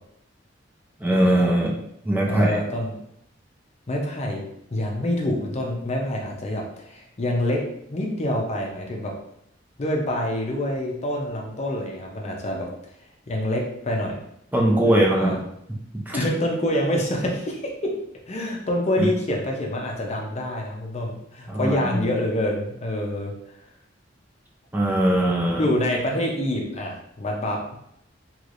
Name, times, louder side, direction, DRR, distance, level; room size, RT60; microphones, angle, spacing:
voice 1, 1.0-1.7 2.1-2.6 14.5-15.4 16.1-16.2 19.0-19.1 21.5-22.1 24.7-25.7, right 1 dB, 10° right, -2 dB, 0.5 m, -21 dB
voice 2, 2.3-2.9 3.9-4.4 4.7-7.6 7.9-9.1 9.8-12.7 13.3-14.1 14.8-15.4 16.1-17.9 18.3-23.3 25.5-27.8, left 1 dB, 35° left, 0 dB, 0.6 m, -26 dB
3.2 x 3.1 x 2.5 m, 0.76 s
head